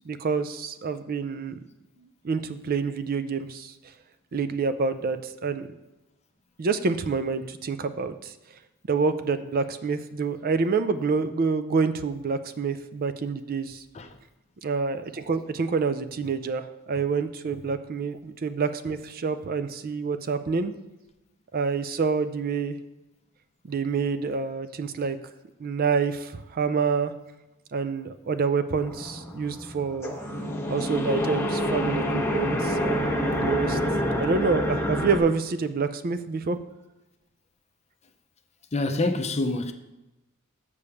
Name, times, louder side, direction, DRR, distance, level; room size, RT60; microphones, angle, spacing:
voice 1, 0.1-1.6 2.2-3.7 4.3-5.7 6.6-8.3 8.9-13.8 14.6-20.7 21.5-22.8 23.7-25.2 25.6-27.1 27.7-30.1 30.7-33.8 34.2-36.6, right 5 dB, 45° right, 0.4 m, -27 dB
sound 1, 28.9-35.2, left 1 dB, 10° left, 1.1 m, -27 dB
voice 2, 38.7-39.7, left 2 dB, 30° left, 0.6 m, -26 dB
6.8 x 5.1 x 6.9 m
head